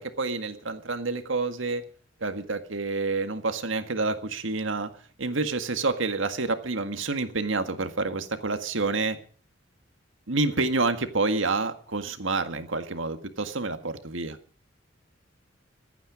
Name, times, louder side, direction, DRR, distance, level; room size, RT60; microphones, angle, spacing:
voice 1, 0.0-1.8 2.2-4.9 5.2-9.2 10.3-14.4, right 3 dB, 75° right, 8 dB, 1.8 m, -28 dB
26.0 x 9.3 x 5.1 m, 0.43 s
head